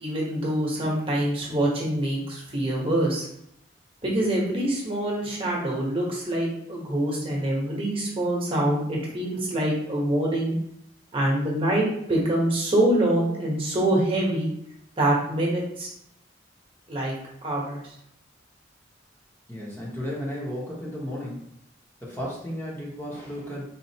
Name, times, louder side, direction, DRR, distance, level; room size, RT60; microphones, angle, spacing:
voice 1, 0.0-3.3 4.0-10.5 11.1-14.5 15.0-15.9 16.9-17.1 17.4-17.8, right 1 dB, 30° right, -3 dB, 1.0 m, -25 dB
voice 2, 19.5-21.4 22.0-23.7, equal, 15° left, -5 dB, 0.8 m, -34 dB
4.1 x 2.5 x 2.8 m, 0.76 s
head